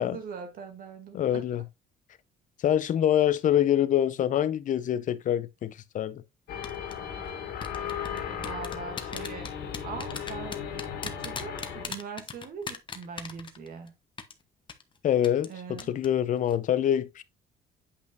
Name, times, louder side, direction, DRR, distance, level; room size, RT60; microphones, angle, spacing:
voice 1, 0.0-1.5 8.2-9.5 9.8-13.9 15.5-15.9, right 6 dB, 60° right, 2.3 m, -41 dB
voice 2, 1.1-1.6 2.6-6.2 15.0-17.2, left 10 dB, 50° left, 0.7 m, -25 dB
sound 1, 6.5-11.8, left 8 dB, 70° left, 2.0 m, -36 dB
sound 2, 6.6-6.9 7.6-13.9 14.2-14.3 14.7-14.8 15.2-15.5 15.8-16.1 16.4-16.5, left 5 dB, 30° left, 1.0 m, -37 dB
8.5 x 5.3 x 2.5 m
cardioid pair, 110°, 17 cm